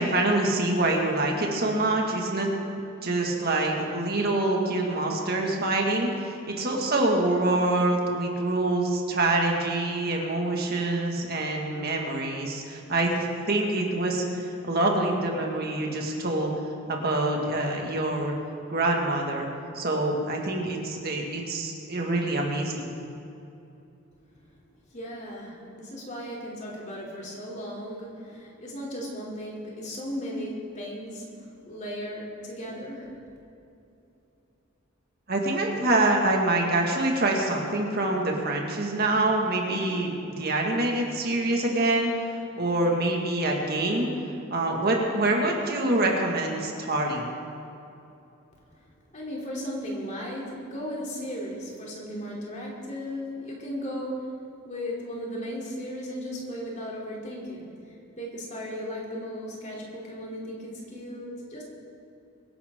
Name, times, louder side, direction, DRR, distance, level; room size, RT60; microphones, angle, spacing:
voice 1, 0.0-2.5 3.0-16.5 16.9-18.3 18.7-19.5 19.7-22.9 35.3-40.1 40.4-42.3 42.6-44.1 44.5-47.3, right 2 dB, 50° right, 0 dB, 1.9 m, -25 dB
voice 2, 24.9-33.2 49.1-61.6, equal, 35° left, -4 dB, 3.2 m, -36 dB
24.0 x 11.0 x 3.8 m, 2.8 s
head